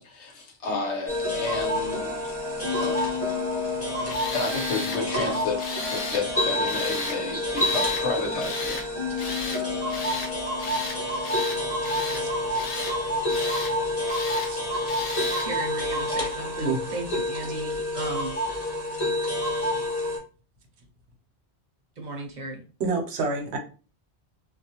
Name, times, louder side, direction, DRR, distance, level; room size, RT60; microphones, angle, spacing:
voice 1, 0.0-2.3 2.7-3.0 4.3-8.8, left 3 dB, 85° left, 2 dB, 1.0 m, -31 dB
sound 1, 1.1-20.2, left 1 dB, 15° left, 0.8 m, -28 dB
voice 2, 3.7-4.2 12.2-12.3 14.5-14.6 16.6-16.8 22.8-23.6, right 3 dB, 75° right, 3 dB, 0.9 m, -29 dB
Tools, 4.1-5.0 5.6-6.2 6.7-7.2 7.5-8.1 8.4-8.9 9.2-9.6 9.9-10.3 10.6-11.0 11.2-12.2 12.5-13.0 13.3-13.7 14.1-14.5 14.9-15.5, left 3 dB, 50° left, 0.5 m, -34 dB
voice 3, 15.4-18.4 22.0-22.6, right 2 dB, 50° right, 1 dB, 0.7 m, -35 dB
2.4 x 2.1 x 2.7 m, 0.35 s
omnidirectional pair, 1.1 m